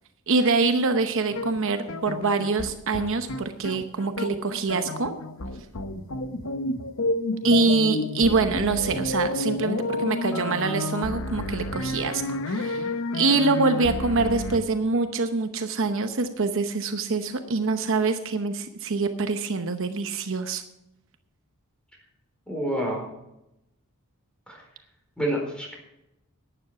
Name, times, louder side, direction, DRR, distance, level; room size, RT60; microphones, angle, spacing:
voice 1, 0.3-5.1 7.4-12.9 13.1-20.6, right 3 dB, 60° right, 7 dB, 0.9 m, -25 dB
sound 1, 1.3-14.6, left 2 dB, 65° left, 0.9 m, -30 dB
voice 2, 22.5-23.1 24.5-24.6 25.2-25.7, right 1 dB, 5° left, 0 dB, 4.2 m, -29 dB
11.5 x 9.9 x 5.8 m, 0.88 s
head